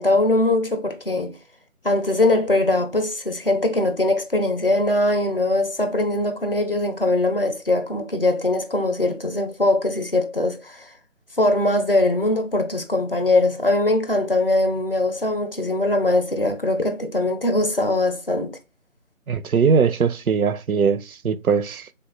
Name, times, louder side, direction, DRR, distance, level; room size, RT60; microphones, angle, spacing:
voice 1, 0.0-1.4 1.8-10.9 11.4-18.6, left 2 dB, 40° left, 0.6 m, -21 dB
voice 2, 19.3-21.9, right 6 dB, 90° right, 0.5 m, -20 dB
3.4 x 2.2 x 4.0 m
figure-of-eight pair, 160°, 42 cm